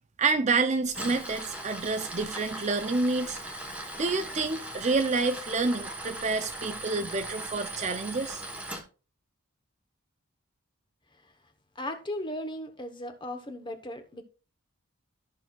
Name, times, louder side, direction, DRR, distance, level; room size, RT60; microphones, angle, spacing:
voice 1, 0.2-3.4 4.0-8.4, right 3 dB, 30° right, 0.5 m, -28 dB
Tools, 0.8-8.8, right 1 dB, 5° right, 1.2 m, -39 dB
voice 2, 11.7-14.2, left 1 dB, 20° left, 1.0 m, -36 dB
13.5 x 6.1 x 2.3 m
head